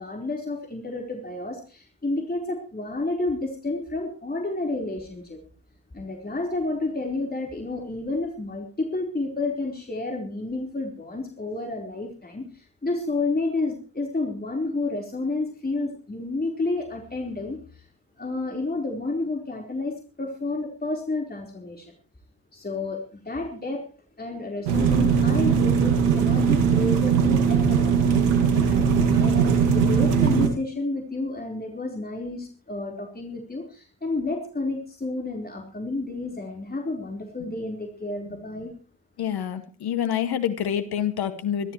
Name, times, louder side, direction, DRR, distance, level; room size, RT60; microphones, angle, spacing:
voice 1, 0.0-5.4 5.9-17.9 18.2-21.9 22.5-23.9 24.2-28.1 28.6-38.7, left 2 dB, 20° left, 1 dB, 4.4 m, -30 dB
sound 1, 24.7-30.5, right 6 dB, 85° right, 2.2 m, -20 dB
voice 2, 39.2-41.7, left 9 dB, 65° left, 9 dB, 2.0 m, -27 dB
26.0 x 13.5 x 3.2 m, 0.36 s
hypercardioid pair, 40°, 41 cm